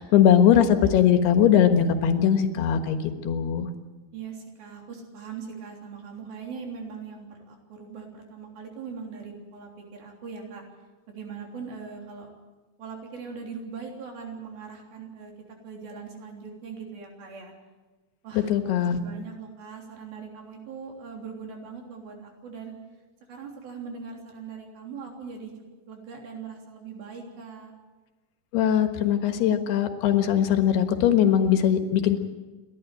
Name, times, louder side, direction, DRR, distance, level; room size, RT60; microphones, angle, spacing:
voice 1, 0.0-3.7 18.4-19.0 28.5-32.2, left 9 dB, 90° left, 7 dB, 3.4 m, -20 dB
voice 2, 4.1-10.6 11.1-12.3 12.8-15.3 15.6-17.5 18.2-18.5 18.8-22.7 23.3-25.5 25.9-27.7, right 5 dB, 70° right, 1 dB, 5.2 m, -40 dB
29.5 x 11.5 x 9.1 m, 1.2 s
omnidirectional pair, 4.5 m